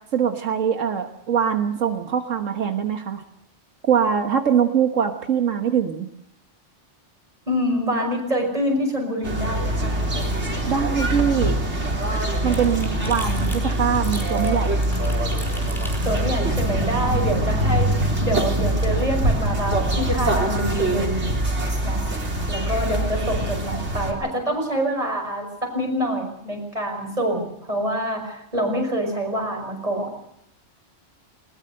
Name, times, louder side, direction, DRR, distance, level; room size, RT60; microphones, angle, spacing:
voice 1, 0.1-3.2 3.8-6.1 10.7-11.6 12.4-14.7, right 8 dB, 90° right, 6 dB, 1.7 m, -22 dB
voice 2, 7.5-9.9 16.0-17.9 18.2-21.4 21.8-22.0 22.5-30.1, equal, 30° right, 2 dB, 5.9 m, -26 dB
sound 1, 9.2-24.1, right 1 dB, 65° right, 3.9 m, -23 dB
sound 2, 11.5-17.4, equal, ahead, 4.8 m, -39 dB
20.5 x 20.5 x 6.6 m, 0.78 s
omnidirectional pair, 1.3 m